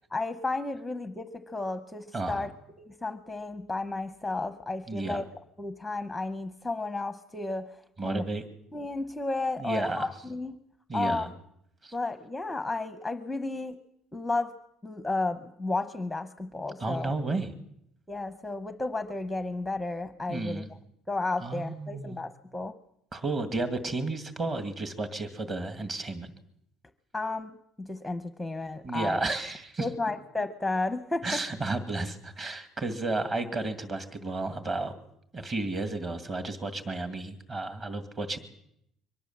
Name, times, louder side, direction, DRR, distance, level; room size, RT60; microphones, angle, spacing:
voice 1, 0.1-2.5 2.8-5.3 5.6-8.3 8.7-10.6 10.9-11.3 11.9-13.8 14.1-14.5 14.8-17.1 18.1-20.6 21.1-22.7 27.1-29.2 29.8-31.4, left 2 dB, 5° left, 9 dB, 0.8 m, -33 dB
voice 2, 2.1-2.5 4.9-5.2 8.0-8.4 9.6-10.1 10.9-11.3 11.8-11.9 16.8-17.5 20.3-20.7 21.4-22.2 23.1-26.3 28.8-29.9 31.2-34.9 35.3-38.4, right 2 dB, 25° right, 9 dB, 2.2 m, -32 dB
23.0 x 19.5 x 7.4 m, 0.75 s
cardioid pair, 170°, 0 cm